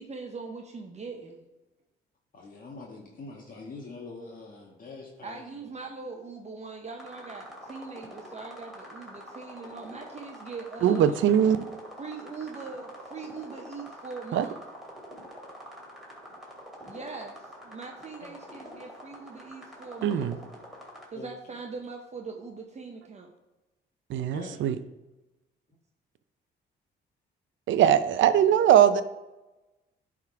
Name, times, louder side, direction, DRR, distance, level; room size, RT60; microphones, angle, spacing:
voice 1, 0.0-1.4 5.2-11.2 12.0-14.6 16.8-20.3 21.1-23.3, right 4 dB, 35° right, 3 dB, 0.8 m, -41 dB
voice 2, 2.3-5.4 18.2-18.3 21.1-21.3 24.3-24.6, left 3 dB, 45° left, -2 dB, 1.4 m, -44 dB
sound 1, 7.0-21.1, equal, ahead, 2.6 m, -46 dB
voice 3, 10.8-11.6 14.3-14.4 20.0-20.4 24.1-24.7 27.7-29.0, right 9 dB, 75° right, 13 dB, 0.6 m, -21 dB
10.5 x 3.7 x 4.7 m, 1.0 s
cardioid pair, 90°, 20 cm